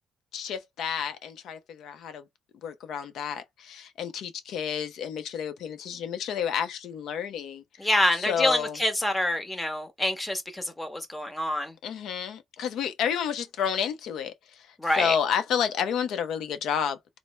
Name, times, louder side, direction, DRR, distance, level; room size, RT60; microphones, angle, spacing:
voice 1, 0.3-2.2 2.6-7.6 8.1-8.8 11.8-14.3 14.9-17.2, left 8 dB, 75° left, 0.6 m, -30 dB
voice 2, 7.8-11.8 14.8-15.1, left 1 dB, 15° left, 1.0 m, -26 dB
3.1 x 2.0 x 3.0 m
cardioid pair, 90°, 0 cm